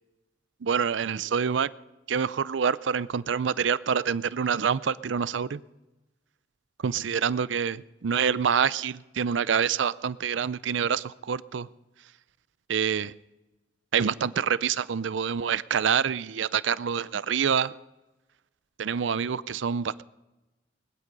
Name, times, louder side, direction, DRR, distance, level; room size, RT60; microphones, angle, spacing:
voice 1, 0.6-1.7 2.1-5.6 6.8-11.7 12.7-13.1 13.9-17.7 18.8-20.0, right 7 dB, 75° right, 18 dB, 0.5 m, -26 dB
19.5 x 12.0 x 5.4 m, 1.1 s
head